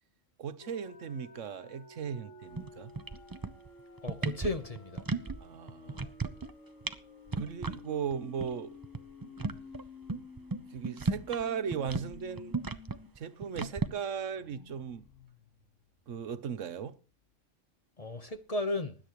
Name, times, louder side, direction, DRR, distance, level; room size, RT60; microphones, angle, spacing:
voice 1, 0.4-2.9 5.4-6.0 7.4-8.8 10.7-12.6 13.2-15.1 16.1-17.0, right 7 dB, 75° right, 1.2 m, -37 dB
sound 1, 0.6-13.1 13.4-13.5 13.9-16.6, left 4 dB, 75° left, 1.9 m, -52 dB
sound 2, 2.5-2.7 2.9-3.7 4.0-5.4 5.7-6.5 6.8-7.0 7.3-7.8 8.1-8.2 8.4-8.5 8.8-11.4 11.7-13.9, right 3 dB, 25° right, 0.5 m, -34 dB
voice 2, 4.0-5.0 18.0-19.0, left 2 dB, 30° left, 1.0 m, -34 dB
20.0 x 10.5 x 3.0 m
omnidirectional pair, 1.3 m